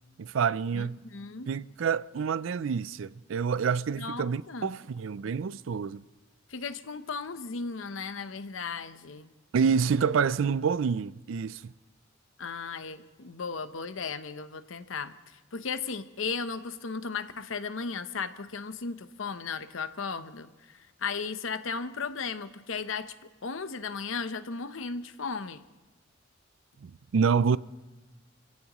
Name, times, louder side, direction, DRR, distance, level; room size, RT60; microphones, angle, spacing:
voice 1, 0.2-1.0 1.5-6.1 9.5-11.7 26.8-27.6, right 6 dB, 75° right, 0.4 m, -27 dB
voice 2, 0.7-1.5 4.0-4.7 6.5-9.3 12.4-23.1 23.4-25.6, left 5 dB, 80° left, 0.8 m, -36 dB
27.5 x 16.0 x 3.0 m
head